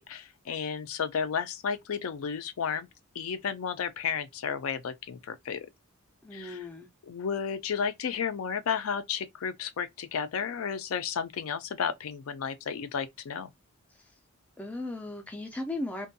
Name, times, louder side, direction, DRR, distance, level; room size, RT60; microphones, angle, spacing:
voice 1, 0.0-2.9 3.2-5.7 6.3-6.7 7.1-13.5, left 7 dB, 75° left, 0.4 m, -33 dB
voice 2, 6.2-6.9 14.6-16.1, left 2 dB, 5° left, 0.3 m, -36 dB
2.5 x 2.2 x 2.6 m
head